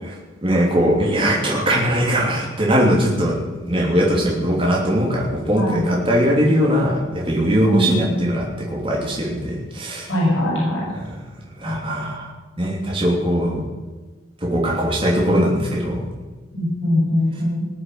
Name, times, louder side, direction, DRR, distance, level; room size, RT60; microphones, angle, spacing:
voice 1, 0.0-10.1 10.9-11.2 11.6-12.3 12.6-13.6 14.4-16.1, equal, 25° right, -3 dB, 3.1 m, -20 dB
voice 2, 5.6-5.9 7.7-8.1 10.1-10.9 11.6-12.1 16.5-17.6, left 1 dB, 80° left, -4 dB, 6.8 m, -21 dB
19.5 x 7.8 x 9.4 m, 1.3 s
head